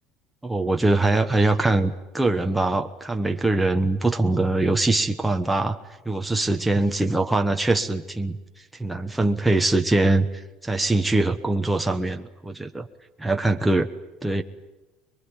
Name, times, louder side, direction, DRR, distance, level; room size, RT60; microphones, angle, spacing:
voice 1, 0.4-5.8 6.0-8.4 8.8-10.3 10.6-12.9 13.2-13.9 14.2-14.4, right 2 dB, 5° right, 4 dB, 1.1 m, -22 dB
23.0 x 23.0 x 9.9 m, 1.1 s
cardioid pair, 155°, 0 cm